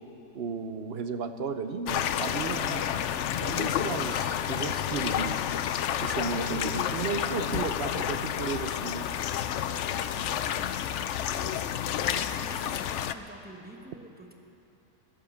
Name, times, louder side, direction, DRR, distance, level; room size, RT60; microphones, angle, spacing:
voice 1, 0.3-3.1 3.4-5.4 6.0-9.1, right 5 dB, 55° right, 9 dB, 0.8 m, -34 dB
sound 1, 1.9-13.1, left 10 dB, 65° left, 0.8 m, -30 dB
voice 2, 9.9-14.3, equal, 5° right, 2 dB, 1.0 m, -48 dB
16.5 x 11.5 x 7.2 m, 3.0 s
omnidirectional pair, 1.5 m